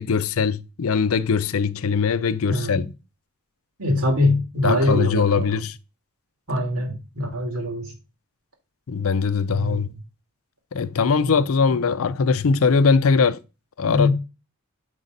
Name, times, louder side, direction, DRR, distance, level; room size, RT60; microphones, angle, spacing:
voice 1, 0.0-2.9 4.6-5.8 8.9-9.9 10.7-13.4 13.8-14.1, left 5 dB, 75° left, 0.5 m, -21 dB
voice 2, 2.5-2.8 3.8-5.6 6.5-7.9 9.5-9.8 11.2-11.4 13.9-14.1, left 1 dB, 90° right, 2.5 m, -23 dB
6.8 x 5.1 x 4.0 m
head